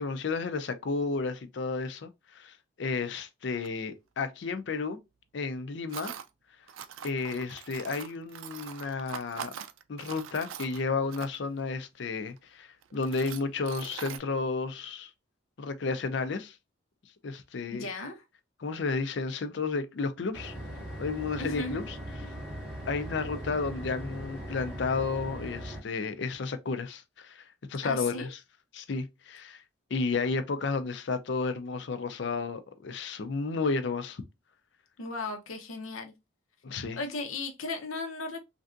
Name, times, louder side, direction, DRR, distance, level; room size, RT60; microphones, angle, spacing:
voice 1, 0.0-5.0 5.3-6.1 7.0-9.5 9.9-15.1 15.6-16.5 17.2-17.9 18.6-20.5 21.0-22.0 22.9-27.4 27.7-28.4 28.7-29.6 29.9-34.2 36.6-37.0, left 4 dB, 60° left, 0.5 m, -32 dB
Tools, 3.6-3.7 5.9-6.3 6.7-11.6 12.3-12.4 12.8-14.2, right 8 dB, 80° right, 0.4 m, -43 dB
voice 2, 17.7-18.2 21.4-21.8 27.8-28.3 35.0-36.1 37.0-38.4, left 3 dB, 90° left, 0.8 m, -36 dB
sound 1, 20.3-25.8, equal, 5° right, 0.8 m, -39 dB
3.3 x 2.6 x 2.5 m
head